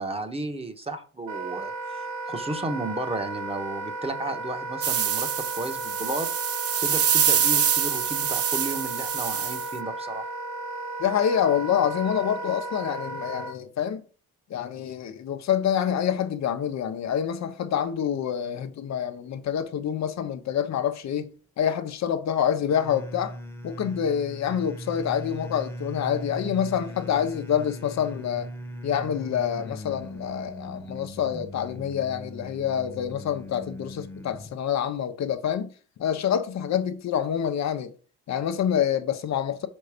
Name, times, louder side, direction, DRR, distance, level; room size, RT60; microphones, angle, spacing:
voice 1, 0.0-6.3 6.8-10.3, right 2 dB, 20° right, 1.3 m, -33 dB
Wind instrument woodwind instrument, 1.3-13.6, right 2 dB, 85° right, 1.1 m, -34 dB
sound 1, 4.8-9.7, right 8 dB, 50° right, 0.8 m, -25 dB
voice 2, 11.0-14.0 14.5-21.3 21.6-23.3 23.6-28.5 28.8-35.7 36.0-37.9 38.3-39.7, left 9 dB, 65° left, 0.9 m, -27 dB
sound 2, 22.7-34.6, equal, 5° left, 1.2 m, -39 dB
5.5 x 5.3 x 5.1 m
cardioid pair, 90°, 30 cm